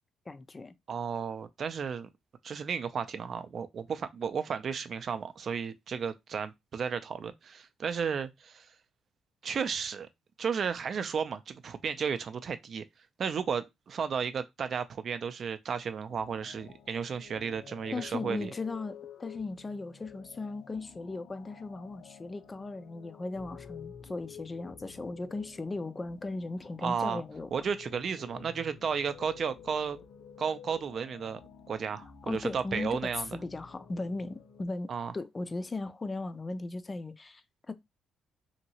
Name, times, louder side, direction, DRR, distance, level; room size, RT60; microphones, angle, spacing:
voice 1, 0.3-0.7 17.9-27.5 32.3-33.0 33.3-37.7, left 3 dB, 25° left, 0.4 m, -37 dB
voice 2, 0.9-2.1 2.4-8.7 9.4-10.1 10.4-12.8 13.2-18.5 26.8-27.2 27.5-30.0 30.4-31.4 31.7-33.4 34.9-35.1, right 6 dB, 50° right, 0.4 m, -33 dB
sound 1, 16.1-34.6, left 7 dB, 65° left, 0.6 m, -51 dB
2.9 x 2.6 x 2.8 m
cardioid pair, 90°, 0 cm